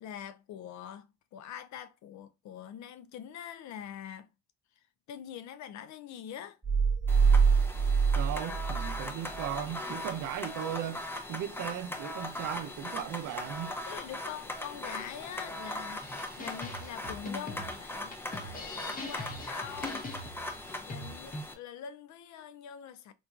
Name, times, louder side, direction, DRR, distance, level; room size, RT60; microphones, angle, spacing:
voice 1, 0.0-4.3 5.1-6.6 13.9-20.4 20.9-23.1, left 9 dB, 70° left, 0.5 m, -44 dB
sound 1, 6.6-9.6, right 5 dB, 10° right, 1.2 m, -25 dB
sound 2, 7.1-21.5, left 1 dB, 5° left, 0.5 m, -40 dB
voice 2, 8.1-11.0 11.3-13.7, right 10 dB, 90° right, 0.6 m, -37 dB
sound 3, 16.0-21.4, left 2 dB, 30° left, 0.9 m, -42 dB
4.0 x 2.3 x 2.3 m
cardioid pair, 90°, 30 cm